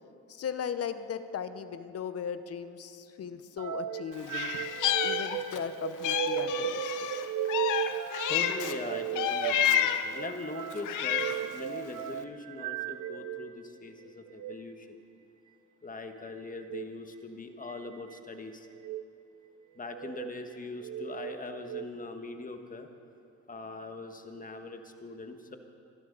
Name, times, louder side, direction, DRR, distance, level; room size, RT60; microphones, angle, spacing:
voice 1, 0.3-7.1, left 7 dB, 55° left, 11 dB, 0.9 m, -38 dB
sound 1, 3.6-13.5 14.3-14.6 16.6-16.9 17.7-18.2 18.7-19.0 19.8-20.3 20.8-21.9, right 10 dB, 75° right, 0.7 m, -36 dB
Meow, 4.3-5.7 6.0-8.8 9.2-10.2 10.7-11.5, left 10 dB, 85° left, 0.8 m, -30 dB
voice 2, 8.3-11.2 11.5-15.0 15.8-18.7 19.7-22.9 23.5-25.6, left 3 dB, 25° left, 6 dB, 1.4 m, -41 dB
24.5 x 12.0 x 4.0 m, 2.6 s
cardioid pair, 90°, 30 cm